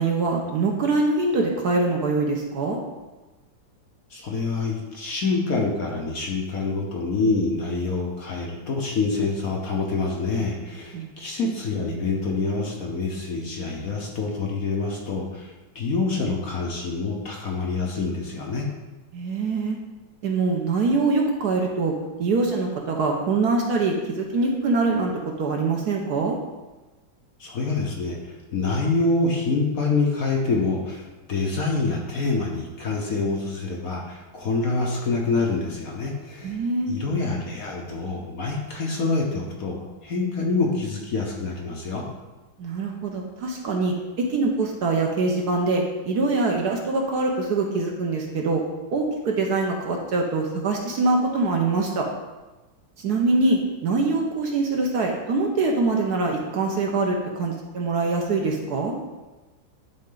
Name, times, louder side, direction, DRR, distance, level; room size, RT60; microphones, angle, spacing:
voice 1, 0.0-2.8 10.9-11.1 19.1-19.8 20.2-21.9 22.2-26.4 36.4-36.9 42.6-48.6 48.9-52.1 53.0-58.9, right 3 dB, 60° right, 1 dB, 1.2 m, -24 dB
voice 2, 4.1-18.7 27.4-42.0, left 3 dB, 55° left, -1 dB, 1.2 m, -26 dB
10.5 x 3.8 x 3.8 m, 1.1 s
omnidirectional pair, 2.1 m